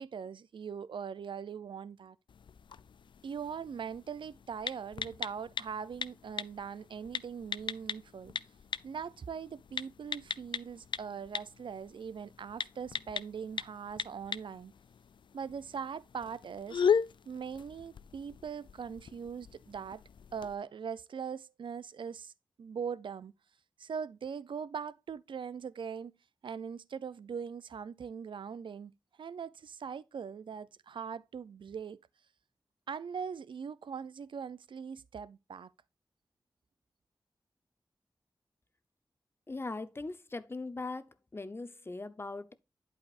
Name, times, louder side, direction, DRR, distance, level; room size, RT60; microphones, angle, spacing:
voice 1, 0.0-2.2 3.2-8.3 8.8-14.7 15.3-16.8 17.3-20.0 20.3-22.3 22.6-23.3 23.8-26.1 26.4-28.9 29.2-32.0 32.9-35.7, right 6 dB, 85° right, 0.4 m, -41 dB
sound 1, 2.3-20.6, left 7 dB, 75° left, 0.4 m, -39 dB
voice 2, 39.5-41.1 41.3-42.5, left 3 dB, 30° left, 0.7 m, -40 dB
11.0 x 4.9 x 2.5 m
wide cardioid pair, 110°, 8 cm